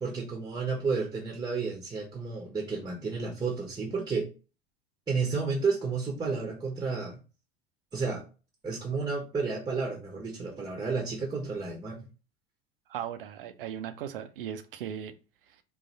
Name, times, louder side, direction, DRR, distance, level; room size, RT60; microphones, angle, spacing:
voice 1, 0.0-4.3 5.1-7.2 7.9-8.2 8.6-12.0, right 4 dB, 15° right, 1.0 m, -31 dB
voice 2, 12.9-15.1 15.5-15.6, right 9 dB, 65° right, 0.6 m, -37 dB
3.9 x 2.8 x 4.1 m
figure-of-eight pair, 75°, 30 cm